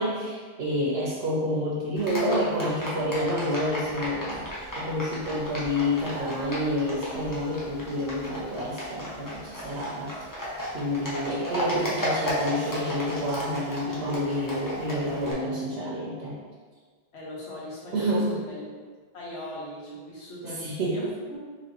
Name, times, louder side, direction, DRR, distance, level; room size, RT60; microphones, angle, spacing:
voice 1, 0.0-4.4 4.8-10.1 10.7-16.4 17.9-18.4 20.6-21.0, equal, 90° right, -5 dB, 1.0 m, -28 dB
Livestock farm animals working animals, 2.0-15.3, equal, 20° left, 0.7 m, -34 dB
voice 2, 17.1-18.6 19.1-21.4, equal, 85° left, -5 dB, 1.3 m, -40 dB
4.1 x 2.9 x 2.9 m, 1.5 s
omnidirectional pair, 1.1 m